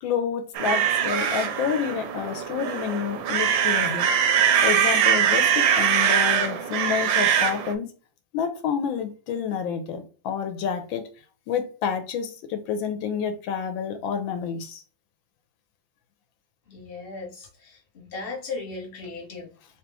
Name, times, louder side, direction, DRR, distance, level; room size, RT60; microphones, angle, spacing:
voice 1, 0.0-4.1 4.6-7.9 8.3-11.1 11.5-14.8, left 7 dB, 85° left, 1.4 m, -29 dB
sound 1, 0.6-7.7, right 8 dB, 90° right, 1.4 m, -22 dB
voice 2, 16.7-19.5, left 3 dB, 35° left, 1.3 m, -37 dB
3.6 x 3.0 x 3.3 m
omnidirectional pair, 2.1 m